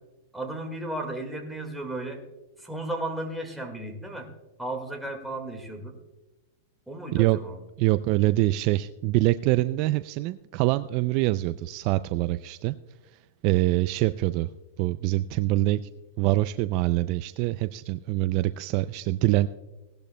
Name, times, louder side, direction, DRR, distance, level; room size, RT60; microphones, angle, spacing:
voice 1, 0.3-2.2 2.6-4.3 4.6-5.9 6.9-7.6, right 1 dB, ahead, 2 dB, 1.8 m, -34 dB
voice 2, 7.8-12.7 13.1-14.5 14.8-15.8 16.2-19.5, right 17 dB, 45° right, 13 dB, 0.3 m, -24 dB
17.5 x 12.0 x 2.2 m, 1.1 s
supercardioid pair, 150°, 0 cm